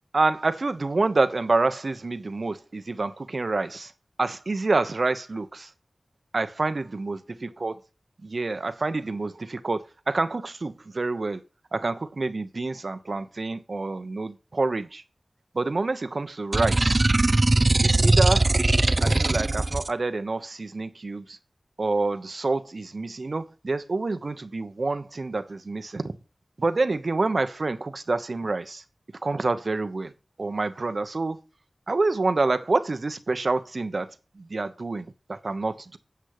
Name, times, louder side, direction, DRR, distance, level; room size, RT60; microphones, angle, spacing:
voice 1, 0.1-3.9 4.2-5.7 6.3-7.8 8.2-11.4 11.7-15.0 15.5-17.1 17.8-18.6 19.0-21.4 21.8-26.1 26.6-28.8 29.2-30.1 30.4-31.4 31.9-36.0, right 3 dB, 60° right, 1.2 m, -27 dB
sound 1, 16.5-19.9, right 2 dB, 40° right, 0.8 m, -20 dB
10.5 x 7.4 x 4.9 m
wide cardioid pair, 55°, 0 cm